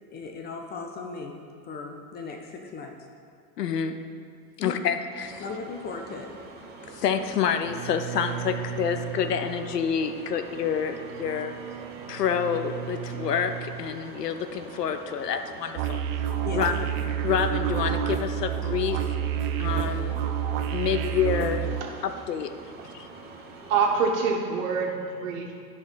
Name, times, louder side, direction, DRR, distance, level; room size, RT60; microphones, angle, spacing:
voice 1, 0.1-1.4 1.6-3.0 4.6-4.8 5.4-6.4 16.4-16.6, left 4 dB, 20° left, 3 dB, 0.6 m, -37 dB
voice 2, 3.6-4.0 4.6-5.4 6.9-11.6 12.1-16.0 16.5-16.8 17.2-19.1 19.6-20.2 20.7-21.7 22.0-22.6 22.9-23.1, left 7 dB, 75° left, 9 dB, 0.8 m, -28 dB
sound 1, 5.2-24.1, right 3 dB, 20° right, 1.2 m, -45 dB
Bowed string instrument, 7.6-13.9, right 8 dB, 85° right, 0.8 m, -38 dB
sound 2, 15.8-21.8, right 9 dB, 35° right, 0.6 m, -28 dB
voice 3, 23.6-25.5, right 5 dB, 55° right, 1 dB, 1.6 m, -26 dB
13.5 x 5.1 x 4.0 m, 2.2 s
figure-of-eight pair, 100°, 48 cm